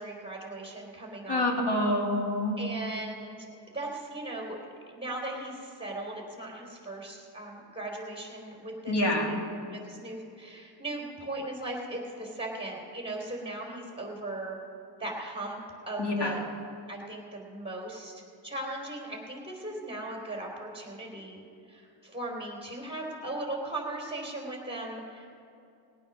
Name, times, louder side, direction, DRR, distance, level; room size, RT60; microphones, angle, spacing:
voice 1, 0.0-1.5 2.6-3.5 3.7-4.6 4.9-9.3 9.7-14.6 15.0-15.6 15.9-16.4 16.9-21.4 21.7-25.3, right 2 dB, 10° right, -1 dB, 3.3 m, -38 dB
voice 2, 1.3-2.6 8.9-9.4 16.0-16.3, left 1 dB, 60° left, 0 dB, 2.3 m, -27 dB
19.0 x 9.2 x 6.1 m, 2.6 s
wide cardioid pair, 110°, 45 cm